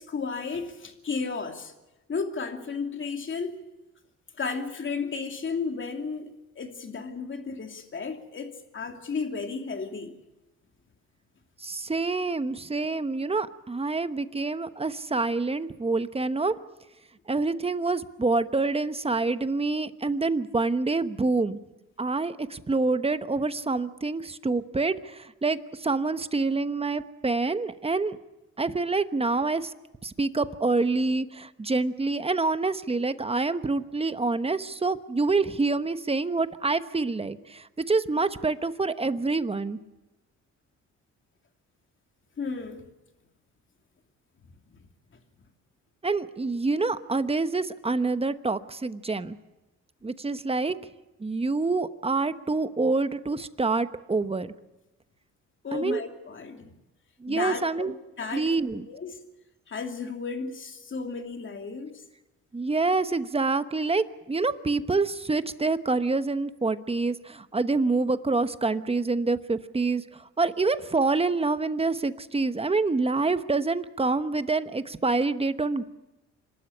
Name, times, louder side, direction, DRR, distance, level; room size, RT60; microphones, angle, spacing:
voice 1, 0.0-1.7 2.1-3.6 4.4-10.2 42.4-42.9 44.7-44.8 45.1-45.2 55.6-56.7 57.3-59.2 59.7-62.0, left 5 dB, 40° left, 5 dB, 2.8 m, -34 dB
voice 2, 11.6-16.5 17.3-21.6 22.0-28.2 28.6-29.7 30.0-39.8 46.0-49.4 50.0-50.7 51.2-54.5 55.7-56.0 57.2-57.9 58.3-58.9 62.5-75.8, right 3 dB, 20° right, 12 dB, 1.0 m, -27 dB
26.0 x 12.5 x 9.9 m, 1.0 s
cardioid pair, 90°, 30 cm